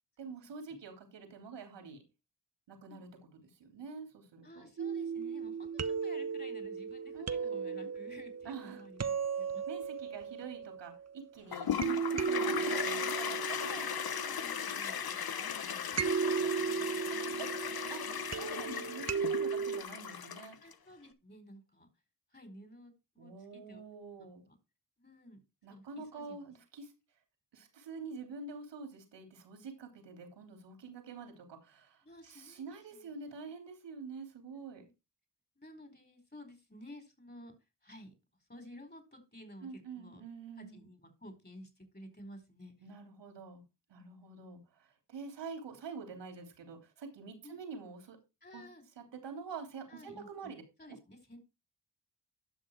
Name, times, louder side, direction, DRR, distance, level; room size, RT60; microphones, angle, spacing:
voice 1, 0.2-2.0 2.7-3.1 3.4-4.6 7.1-7.9 8.4-8.8 9.7-13.9 15.6-16.1 17.4-17.5 17.9-18.0 18.3-20.6 23.2-24.4 25.6-26.9 27.5-34.8 39.6-40.8 42.8-43.6 43.9-48.2 48.5-48.6 49.0-50.6, right 5 dB, 85° right, 5 dB, 3.5 m, -47 dB
voice 2, 4.4-9.6 13.1-13.9 14.2-17.2 20.6-21.9 22.3-23.8 24.1-24.6 25.0-25.4 25.7-26.5 32.0-33.5 34.1-34.9 35.6-37.5 37.8-38.1 38.5-40.3 40.6-42.7 44.0-44.3 47.4-47.6 48.4-48.8 49.9-51.4, left 1 dB, 25° left, 8 dB, 4.6 m, -54 dB
sound 1, 4.8-11.2 11.8-14.8 16.0-19.8, right 6 dB, 40° right, 1.0 m, -36 dB
Toilet flush, 11.5-20.7, left 8 dB, 60° left, 1.1 m, -37 dB
11.5 x 6.2 x 4.6 m, 0.27 s
cardioid pair, 45°, 42 cm